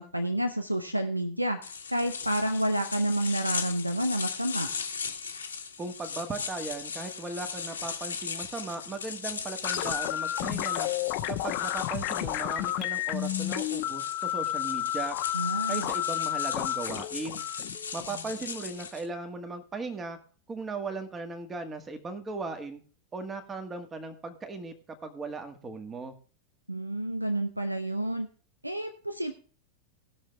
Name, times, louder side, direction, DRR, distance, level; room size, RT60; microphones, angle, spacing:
voice 1, 0.0-1.6 1.9-4.7 15.3-15.9 26.7-28.3 28.6-29.3, right 1 dB, 90° right, 9 dB, 0.8 m, -29 dB
sound 1, 1.6-19.1, left 6 dB, 75° left, 1.5 m, -38 dB
voice 2, 5.8-10.9 11.3-15.2 15.7-17.4 17.9-20.2 20.5-22.8 23.1-24.7 25.0-26.1, right 3 dB, 20° right, 6 dB, 1.9 m, -37 dB
sound 2, 9.6-18.6, left 13 dB, 45° left, 0.9 m, -31 dB
19.0 x 6.6 x 3.5 m, 0.40 s
figure-of-eight pair, 90°, 0 cm